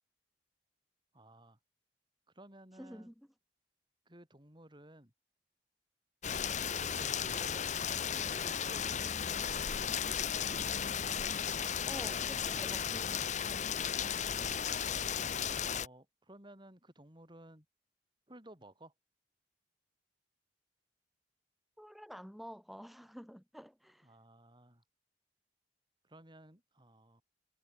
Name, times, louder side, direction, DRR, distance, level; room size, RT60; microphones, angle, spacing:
voice 1, 1.1-1.6 2.3-3.1 4.0-5.1 6.3-7.7 8.1-9.7 15.6-17.6 18.3-18.9 24.0-24.8 26.0-27.2, right 1 dB, 25° right, 6.7 m, -56 dB
voice 2, 2.7-3.1 11.9-13.3 21.8-24.2, equal, ahead, 2.7 m, -49 dB
Rain, 6.2-15.9, left 8 dB, 45° left, 0.8 m, -35 dB
head